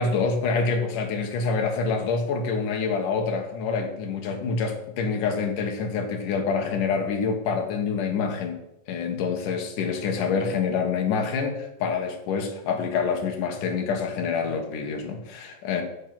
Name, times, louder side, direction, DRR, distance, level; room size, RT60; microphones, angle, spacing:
voice 1, 0.0-8.6 8.9-15.8, left 5 dB, 70° left, 3 dB, 3.0 m, -26 dB
10.0 x 7.8 x 6.0 m, 0.85 s
omnidirectional pair, 4.1 m